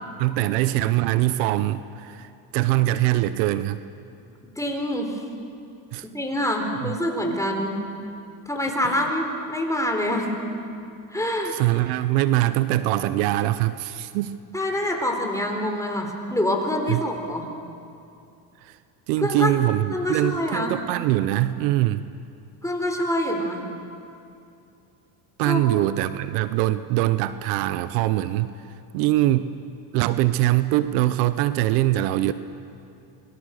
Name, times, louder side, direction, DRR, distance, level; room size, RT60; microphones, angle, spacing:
voice 1, 0.2-3.8 5.9-6.1 6.8-6.9 8.8-9.1 11.5-14.4 16.9-17.0 18.6-18.8 19.1-22.1 25.4-28.5 28.9-29.6 29.9-32.3, right 15 dB, 85° right, 13 dB, 0.9 m, -23 dB
voice 2, 4.6-5.2 6.1-7.8 8.5-10.3 10.6-10.8 11.1-11.6 14.5-17.4 19.2-19.6 19.9-20.8 22.6-23.7 25.4-25.6, left 1 dB, 5° left, 2 dB, 4.1 m, -26 dB
28.5 x 22.0 x 6.6 m, 2.5 s
supercardioid pair, 100°, 48 cm